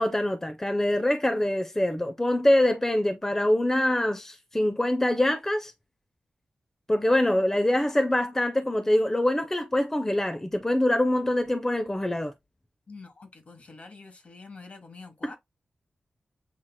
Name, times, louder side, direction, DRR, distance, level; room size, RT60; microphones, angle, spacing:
voice 1, 0.0-5.7 6.9-12.3, left 1 dB, 15° left, 0.5 m, -24 dB
voice 2, 12.9-15.4, left 3 dB, 55° left, 1.3 m, -46 dB
7.4 x 2.8 x 2.2 m
cardioid pair, 60°, 3 cm